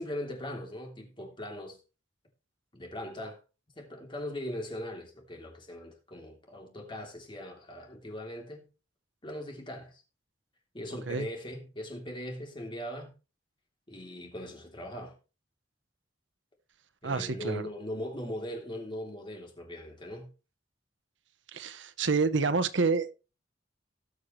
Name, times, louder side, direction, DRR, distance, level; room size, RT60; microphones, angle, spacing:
voice 1, 0.0-1.8 2.7-3.4 3.7-8.7 9.2-10.0 10.7-13.1 13.9-15.2 17.0-20.3, left 1 dB, 25° left, 3.1 m, -40 dB
voice 2, 17.0-17.6 21.5-23.1, right 4 dB, 80° right, 0.9 m, -28 dB
19.0 x 6.5 x 3.1 m
head